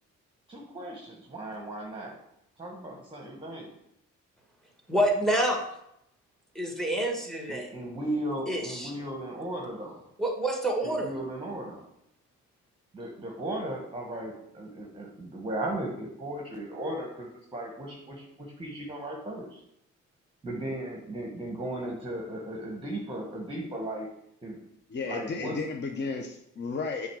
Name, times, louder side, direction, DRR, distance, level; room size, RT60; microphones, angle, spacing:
voice 1, 0.5-2.2 2.6-3.7 7.5-10.0 10.8-11.8 12.9-19.6 20.4-24.1 24.4-24.6 25.0-25.6, right 1 dB, 15° right, 0 dB, 1.4 m, -36 dB
voice 2, 4.9-5.6 6.5-7.7 8.5-8.9 10.2-11.1, right 1 dB, ahead, 1 dB, 1.5 m, -27 dB
voice 3, 24.9-27.1, left 4 dB, 35° left, 3 dB, 0.8 m, -33 dB
7.6 x 3.6 x 4.8 m, 0.78 s
cardioid pair, 90°, 30 cm